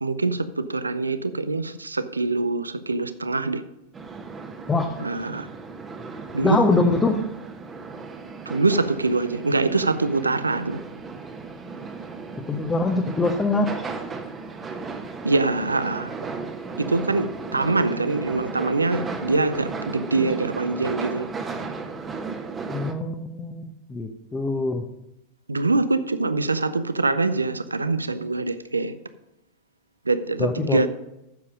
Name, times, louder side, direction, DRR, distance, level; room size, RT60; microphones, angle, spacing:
voice 1, 0.0-3.6 5.0-5.5 6.3-6.7 8.5-10.8 15.2-16.1 16.8-21.3 25.5-28.9 30.1-30.9, right 3 dB, 80° right, 0.5 m, -24 dB
sound 1, 3.9-22.9, right 4 dB, 20° right, 1.1 m, -35 dB
voice 2, 6.4-7.2 12.5-13.7 22.7-24.8 30.4-30.9, left 3 dB, 15° left, 0.8 m, -23 dB
9.2 x 7.2 x 5.1 m
figure-of-eight pair, 90°, 0 cm